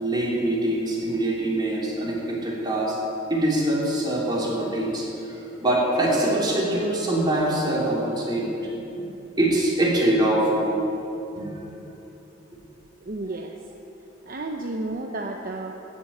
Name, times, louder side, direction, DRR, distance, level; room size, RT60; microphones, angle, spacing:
voice 1, 0.0-2.9 3.3-5.1 5.6-8.5 8.9-9.0 9.4-10.8 11.3-11.5, right 1 dB, 25° right, -5 dB, 3.4 m, -23 dB
voice 2, 13.0-13.6 14.3-15.8, right 2 dB, 50° right, 2 dB, 0.8 m, -32 dB
14.0 x 7.4 x 9.4 m, 3.0 s
head